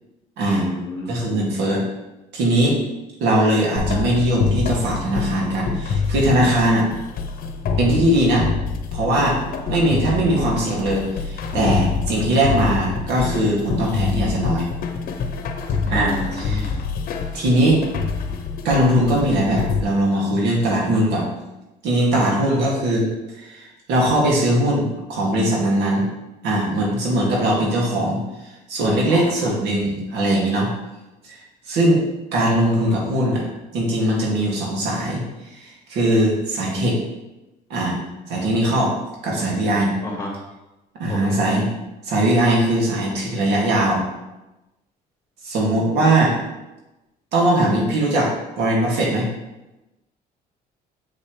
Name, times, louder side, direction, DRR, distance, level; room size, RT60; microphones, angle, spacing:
voice 1, 0.5-1.2 15.9-16.8 22.1-22.6 29.1-29.5 40.0-40.3 41.1-41.4, left 1 dB, 15° left, -2 dB, 2.4 m, -31 dB
voice 2, 1.1-1.8 2.3-2.8 3.2-6.9 7.8-8.5 8.9-9.4 9.7-14.7 15.9-16.7 17.3-17.8 18.6-21.3 21.8-23.1 23.3-26.1 26.4-28.2 28.7-30.7 31.2-31.4 31.7-32.0 32.3-33.5 33.7-35.2 35.5-37.0 37.7-38.0 38.3-38.9 39.2-39.9 41.0-41.7 42.0-44.0 45.4-46.3 47.3-49.3, right 1 dB, 85° right, -3 dB, 2.4 m, -20 dB
sound 1, 3.8-19.8, left 5 dB, 60° left, 0.9 m, -26 dB
7.4 x 6.6 x 3.3 m, 1.0 s
cardioid pair, 110°, 17 cm